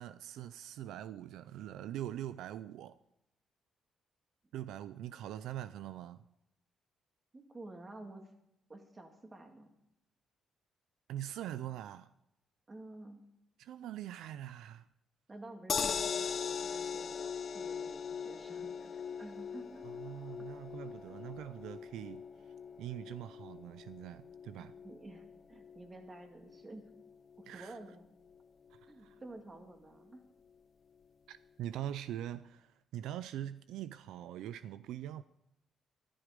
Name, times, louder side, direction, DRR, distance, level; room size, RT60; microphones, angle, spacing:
voice 1, 0.0-3.0 4.5-6.2 11.1-12.1 13.6-14.9 19.8-22.2 22.8-24.7 27.5-27.8 28.8-29.2 31.3-35.2, right 12 dB, 85° right, 0.4 m, -43 dB
voice 2, 7.3-8.3 8.7-9.7 12.7-13.2 15.3-20.0 21.1-21.2 24.6-26.9 27.4-28.1 28.9-30.2, right 2 dB, 25° right, 2.2 m, -51 dB
sound 1, 15.7-27.9 28.3-28.4 28.7-28.8, left 6 dB, 50° left, 0.8 m, -41 dB
14.0 x 11.5 x 5.2 m
cardioid pair, 90°, 0 cm